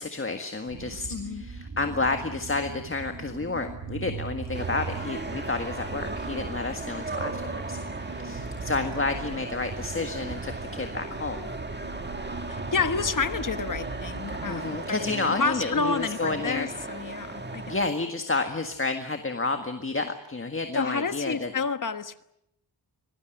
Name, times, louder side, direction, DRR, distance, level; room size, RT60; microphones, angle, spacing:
voice 1, 0.0-11.5 14.4-16.7 17.6-21.5, left 3 dB, 30° left, 6 dB, 1.7 m, -30 dB
sound 1, 0.7-14.8, right 4 dB, 50° right, 5.4 m, -39 dB
voice 2, 1.1-1.4 12.5-17.6 20.7-22.2, left 4 dB, 45° left, 10 dB, 1.4 m, -29 dB
sound 2, 4.5-17.9, right 2 dB, 25° right, 2.0 m, -37 dB
25.0 x 19.0 x 9.1 m, 0.80 s
wide cardioid pair, 130°, 44 cm